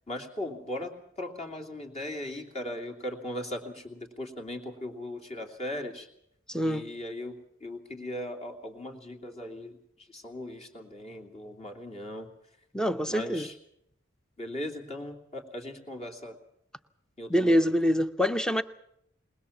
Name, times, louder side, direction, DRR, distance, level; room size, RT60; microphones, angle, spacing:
voice 1, 0.1-6.1 6.6-12.3 13.1-13.5 14.4-16.4 17.2-17.7, left 1 dB, 30° left, 2.9 m, -38 dB
voice 2, 6.5-6.9 12.7-13.5 17.3-18.6, equal, 5° left, 0.7 m, -25 dB
21.0 x 20.5 x 7.2 m
head